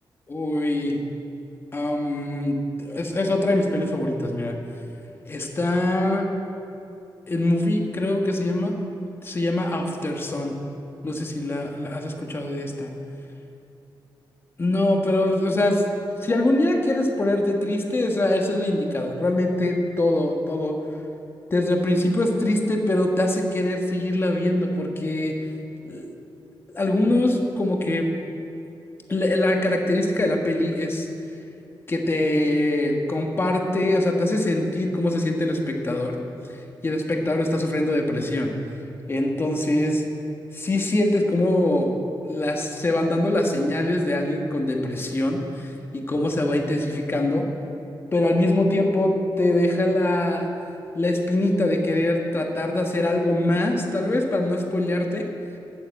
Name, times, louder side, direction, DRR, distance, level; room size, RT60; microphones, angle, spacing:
voice 1, 0.3-1.0 1.7-4.6 5.3-6.3 7.3-8.7 9.2-10.5 11.0-12.9 14.6-15.8 16.2-20.8 21.5-25.4 25.8-26.1 26.7-28.1 29.1-31.1 31.9-36.2 36.8-38.5 39.1-40.0 40.5-41.9 42.3-47.4 48.1-50.5 50.9-55.2, left 1 dB, 30° left, 2 dB, 1.3 m, -23 dB
13.5 x 7.1 x 8.7 m, 2.8 s
wide cardioid pair, 155°, 8 cm